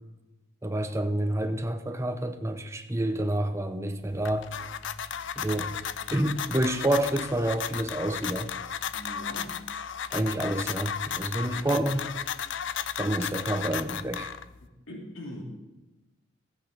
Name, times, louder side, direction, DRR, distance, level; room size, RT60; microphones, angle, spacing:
voice 1, 0.6-4.5 5.4-5.8 6.1-8.5 10.1-12.0 13.0-14.3, right 1 dB, 15° right, 7 dB, 0.7 m, -28 dB
sound 1, 4.0-14.7, left 8 dB, 65° left, 0.5 m, -35 dB
voice 2, 8.9-9.7 11.4-11.7 14.9-15.4, left 1 dB, 80° left, 0 dB, 2.6 m, -41 dB
14.5 x 8.6 x 5.2 m, 1.1 s
head